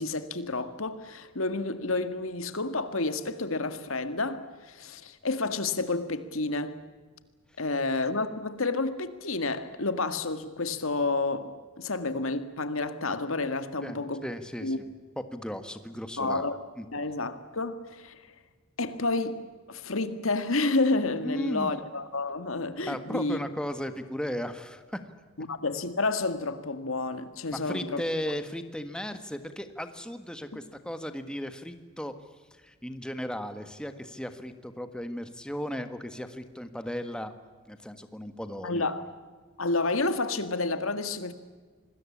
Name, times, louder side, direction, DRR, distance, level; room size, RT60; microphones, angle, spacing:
voice 1, 0.0-6.8 7.6-14.2 14.6-14.8 16.2-16.6 16.9-18.2 18.8-19.4 19.7-23.4 25.4-28.0 38.6-39.0 39.6-41.3, left 3 dB, 85° left, 1.9 m, -30 dB
voice 2, 13.8-14.8 15.2-16.4 16.8-16.9 21.2-21.7 22.9-25.0 27.5-32.1 32.6-37.3 37.7-38.9, equal, 5° left, 1.5 m, -36 dB
26.5 x 20.5 x 8.6 m
head